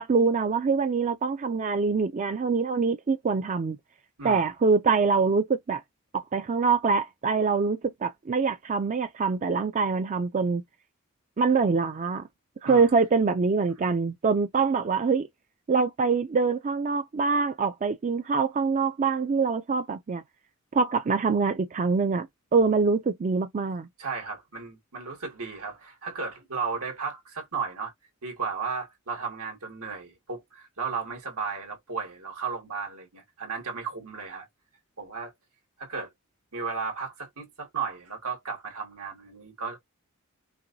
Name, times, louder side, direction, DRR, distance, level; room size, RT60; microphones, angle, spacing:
voice 1, 0.0-3.8 4.2-5.8 6.1-10.6 11.4-12.3 12.6-15.3 15.7-20.2 20.7-22.3 22.5-23.9, right 4 dB, 35° right, 0.4 m, -24 dB
voice 2, 4.2-4.5 12.6-12.9 24.0-27.9 28.2-34.5 35.0-35.3 35.8-36.1 36.5-39.8, right 5 dB, 85° right, 2.0 m, -34 dB
5.7 x 2.6 x 2.7 m
head